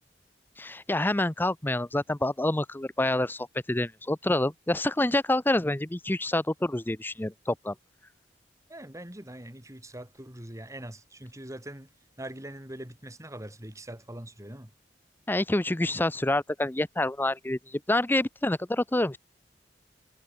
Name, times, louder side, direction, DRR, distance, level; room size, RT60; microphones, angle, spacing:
voice 1, 0.6-7.7 15.3-19.2, left 1 dB, 10° left, 0.6 m, -27 dB
voice 2, 8.7-11.9 12.2-14.7, right 1 dB, 15° right, 3.5 m, -42 dB
head